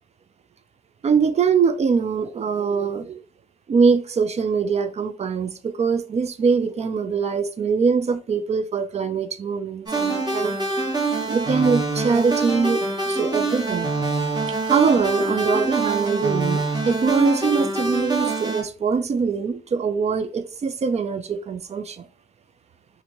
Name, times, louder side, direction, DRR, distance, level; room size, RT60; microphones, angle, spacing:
voice 1, 1.0-3.2 3.7-10.6 11.2-13.9 14.6-22.1, right 5 dB, 45° right, 0.4 m, -23 dB
sound 1, 9.9-18.6, right 3 dB, 25° right, 1.3 m, -25 dB
2.8 x 2.6 x 3.0 m
cardioid pair, 65°, 16 cm